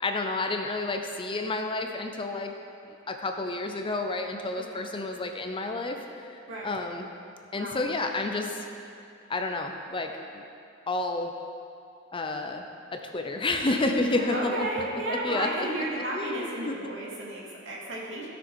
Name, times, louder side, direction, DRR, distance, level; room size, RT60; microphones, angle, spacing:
voice 1, 0.0-2.5 3.1-7.1 7.5-8.6 9.3-10.4 10.9-11.3 12.1-12.6 12.9-15.7 15.9-16.9, left 2 dB, 25° left, 4 dB, 0.6 m, -30 dB
voice 2, 14.1-18.3, right 2 dB, 65° right, -5 dB, 2.4 m, -33 dB
16.0 x 6.2 x 4.7 m, 2.5 s
head